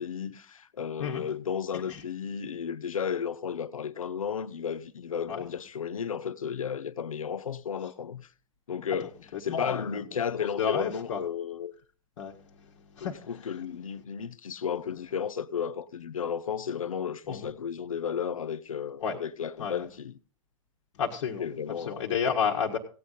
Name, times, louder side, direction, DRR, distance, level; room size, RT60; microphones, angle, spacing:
voice 1, 0.0-8.3 8.7-9.1 9.4-11.7 13.0-20.2 21.4-22.0, left 7 dB, 80° left, 0.6 m, -33 dB
voice 2, 9.5-9.9 10.4-11.2 12.2-12.3 12.9-13.2 17.3-17.5 19.0-19.2 19.6-19.8 21.0-21.5 21.8-22.8, left 7 dB, 65° left, 1.6 m, -30 dB
16.5 x 8.5 x 4.0 m
hypercardioid pair, 105°, 17 cm